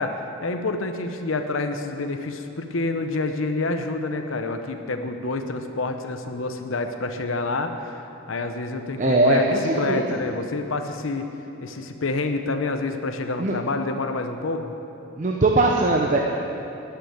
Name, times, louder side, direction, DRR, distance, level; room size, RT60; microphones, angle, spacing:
voice 1, 0.0-11.3 11.6-14.8, left 3 dB, 75° left, 6 dB, 0.8 m, -28 dB
voice 2, 9.0-10.1 13.4-13.6 15.2-16.2, right 2 dB, 40° right, 0 dB, 0.8 m, -20 dB
12.0 x 6.9 x 9.3 m, 3.0 s
head